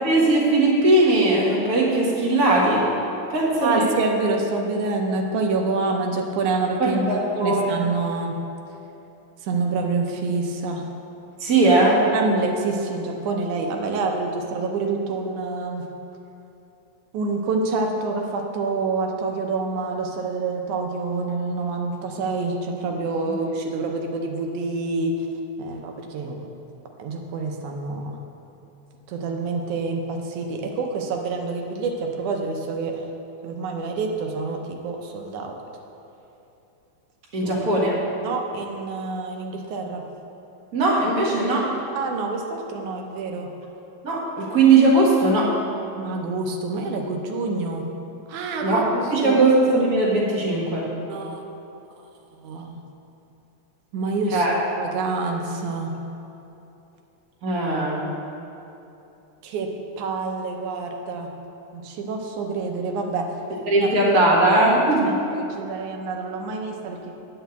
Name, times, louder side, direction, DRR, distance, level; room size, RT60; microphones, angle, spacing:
voice 1, 0.0-2.8 3.3-3.8 6.8-7.8 11.4-12.0 37.3-37.9 40.7-41.7 44.0-45.5 48.6-48.8 49.1-50.9 54.3-54.5 57.4-58.0 63.7-65.2, right 2 dB, 35° right, -4 dB, 1.7 m, -19 dB
voice 2, 3.6-8.4 9.4-10.9 12.0-15.9 17.1-25.3 25.6-26.5 27.0-28.2 29.1-33.1 33.4-35.6 37.4-37.5 38.2-40.0 41.9-43.5 46.0-47.9 48.3-48.9 49.2-49.4 51.1-51.4 52.3-52.8 53.9-54.5 54.8-55.9 59.4-59.7 60.0-61.3 61.7-63.3 63.8-63.9 65.0-67.1, right 3 dB, 85° right, 2 dB, 2.3 m, -27 dB
9.1 x 5.5 x 7.9 m, 2.9 s
omnidirectional pair, 3.4 m